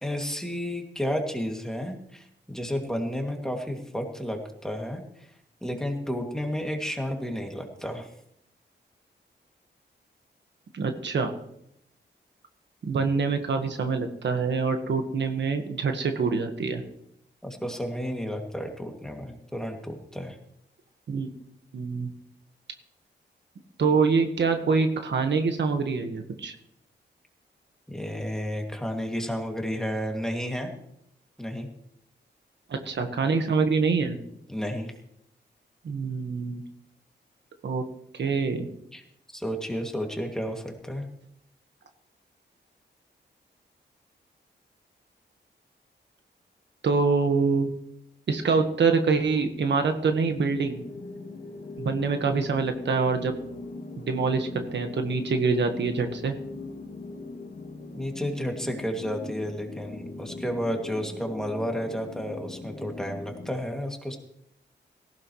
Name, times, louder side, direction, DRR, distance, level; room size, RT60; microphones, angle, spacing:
voice 1, 0.0-5.0 5.6-8.1 17.4-20.4 27.9-30.7 31.4-31.7 34.5-34.9 38.9-39.0 39.3-41.1 57.9-64.2, equal, 5° left, 2 dB, 2.4 m, -32 dB
voice 2, 10.7-11.3 12.8-16.8 21.1-21.3 21.7-22.1 23.8-26.5 32.7-34.2 35.8-36.6 37.6-37.8 38.2-38.7 46.8-47.7 48.3-50.8 51.8-53.3 54.0-56.3, right 4 dB, 70° right, 6 dB, 1.5 m, -25 dB
sound 1, 50.5-63.5, left 3 dB, 65° left, 2.0 m, -40 dB
18.0 x 15.5 x 3.2 m, 0.75 s
wide cardioid pair, 105°, 19 cm